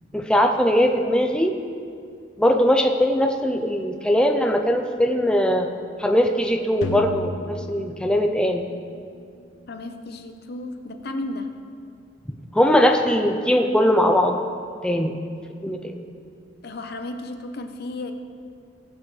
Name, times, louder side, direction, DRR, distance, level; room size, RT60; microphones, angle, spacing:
voice 1, 0.1-1.6 2.4-5.7 6.0-8.6 12.5-14.4 14.8-15.2 15.6-16.0, equal, 5° left, 4 dB, 0.5 m, -20 dB
sound 1, 6.8-9.0, left 2 dB, 90° left, 0.6 m, -33 dB
voice 2, 9.7-11.5 16.6-18.1, left 2 dB, 60° left, 7 dB, 0.8 m, -33 dB
19.5 x 8.3 x 3.3 m, 2.3 s
head